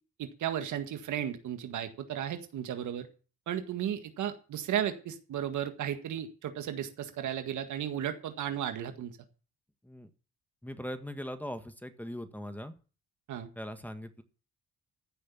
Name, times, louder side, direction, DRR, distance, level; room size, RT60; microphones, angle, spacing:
voice 1, 0.2-3.1 3.5-9.1 13.3-13.5, right 10 dB, 75° right, 8 dB, 1.8 m, -34 dB
voice 2, 10.6-12.7 13.5-14.2, equal, 5° left, 9 dB, 1.6 m, -40 dB
14.5 x 6.7 x 7.1 m, 0.37 s
cardioid pair, 90°, 30 cm